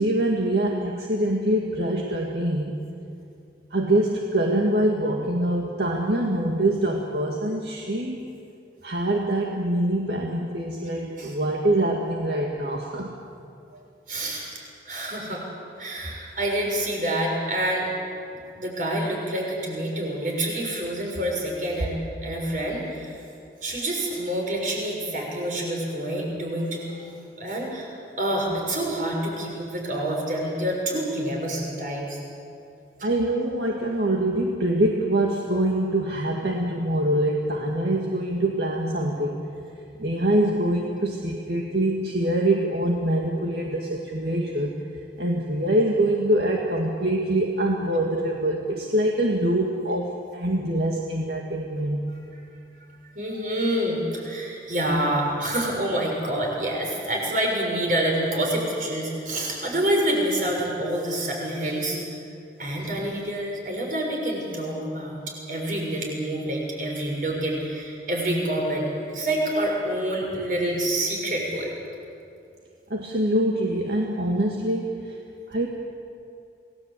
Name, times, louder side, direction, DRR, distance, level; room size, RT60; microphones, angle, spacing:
voice 1, 0.0-2.8 3.7-8.3 8.8-13.1 13.7-13.8 33.0-39.4 40.0-44.8 45.2-52.1 72.9-75.2 75.5-75.7, right 1 dB, 70° right, 0 dB, 2.1 m, -24 dB
voice 2, 14.1-14.5 14.8-15.4 15.8-17.9 18.5-22.0 22.2-23.2 23.6-27.0 27.4-32.2 33.0-33.1 53.1-62.0 62.6-65.2 65.5-71.7, right 1 dB, 50° right, -1 dB, 6.5 m, -27 dB
28.0 x 19.0 x 8.5 m, 2.6 s
head